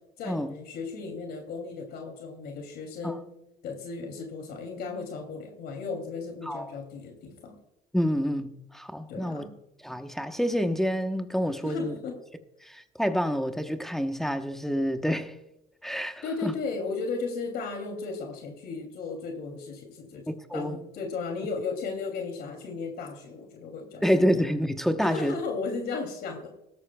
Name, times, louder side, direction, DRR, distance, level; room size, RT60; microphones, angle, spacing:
voice 1, 0.2-3.3 3.6-7.6 9.1-9.5 11.6-12.2 16.2-20.2 20.5-24.0 25.0-26.5, left 4 dB, 70° left, 2.8 m, -35 dB
voice 2, 7.9-9.5 9.8-11.9 12.6-15.3 15.8-16.5 20.3-20.8 24.0-25.3, equal, ahead, 1.0 m, -28 dB
17.0 x 13.5 x 2.3 m
cardioid pair, 110°, 17 cm